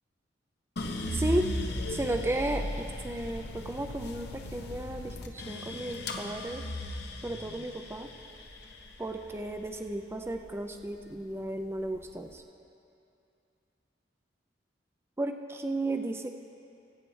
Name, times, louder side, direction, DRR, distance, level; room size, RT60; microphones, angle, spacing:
sound 1, 0.8-11.0 11.4-12.2, left 1 dB, 60° left, 0.9 m, -37 dB
voice 1, 1.1-1.5 1.9-6.7 7.2-8.1 9.0-12.4 15.2-16.4, right 1 dB, 15° right, 6 dB, 0.4 m, -34 dB
20.0 x 8.9 x 3.2 m, 2.6 s
head